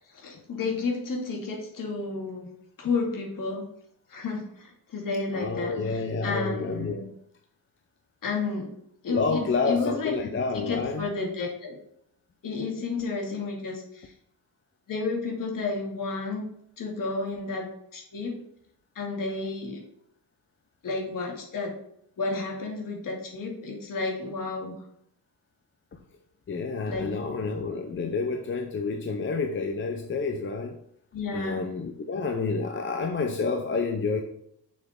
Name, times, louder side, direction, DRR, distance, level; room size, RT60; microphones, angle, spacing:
voice 1, 0.1-3.6 4.1-7.1 8.2-8.8 9.0-11.8 12.4-14.1 14.9-16.4 16.8-18.4 19.0-19.8 20.8-21.8 22.2-24.7 26.9-27.2 31.1-31.6, left 3 dB, 55° left, 0 dB, 2.4 m, -31 dB
voice 2, 5.3-7.0 9.1-11.1 26.5-30.8 31.3-34.2, left 4 dB, 30° left, 4 dB, 0.7 m, -29 dB
6.8 x 6.4 x 3.7 m, 0.72 s
cardioid pair, 135°, 38 cm